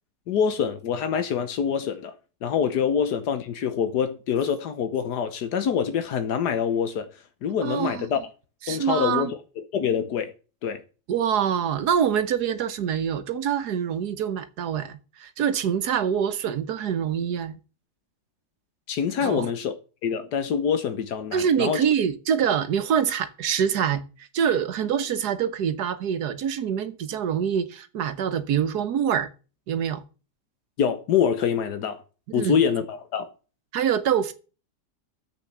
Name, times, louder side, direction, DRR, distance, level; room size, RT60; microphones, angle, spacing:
voice 1, 0.3-2.1 2.4-7.1 7.4-8.2 8.7-10.3 10.6-10.8 18.9-19.7 20.0-21.8 30.8-32.0 32.3-33.3, left 7 dB, 85° left, 1.6 m, -25 dB
voice 2, 7.6-8.1 8.7-9.3 11.1-17.6 19.2-19.5 21.3-29.3 29.7-30.0 32.3-32.6 33.7-34.3, right 8 dB, 80° right, 1.5 m, -25 dB
9.9 x 7.6 x 7.2 m
omnidirectional pair, 1.7 m